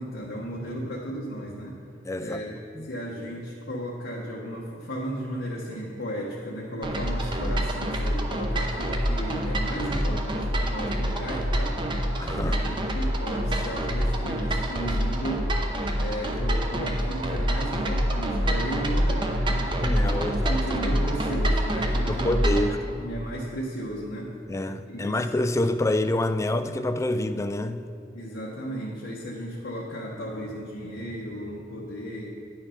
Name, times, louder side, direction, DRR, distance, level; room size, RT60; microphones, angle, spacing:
voice 1, 0.0-1.8 2.2-2.6 2.8-11.8 12.4-15.5 16.0-22.5 22.8-24.3 24.9-25.2 28.1-32.4, equal, 90° left, -5 dB, 1.1 m, -34 dB
voice 2, 2.0-2.4 2.8-2.9 10.1-10.2 12.2-12.8 19.8-20.6 22.1-22.8 24.5-27.9, left 1 dB, 15° left, 10 dB, 0.3 m, -27 dB
sound 1, 6.8-22.7, equal, 25° right, 0.8 m, -26 dB
10.0 x 5.6 x 5.6 m, 2.5 s
head